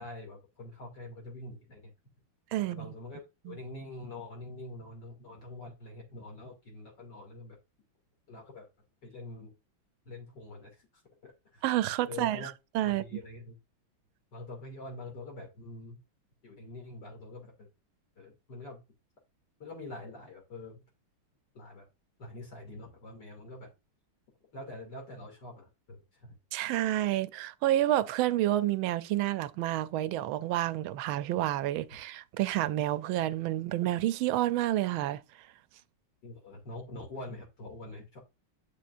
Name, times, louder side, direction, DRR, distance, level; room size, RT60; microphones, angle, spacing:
voice 1, 0.0-1.9 2.7-7.6 8.3-8.7 9.0-9.5 10.0-10.7 11.2-11.6 12.0-12.5 12.8-13.5 14.3-16.0 16.4-17.7 18.2-18.8 19.6-20.8 21.5-21.8 22.2-23.7 24.5-26.3 36.2-38.2, left 2 dB, 55° left, 3.1 m, -45 dB
voice 2, 2.5-2.9 3.5-3.6 11.6-13.0 26.5-35.2, right 14 dB, 80° right, 1.4 m, -29 dB
8.2 x 6.7 x 2.5 m
omnidirectional pair, 2.3 m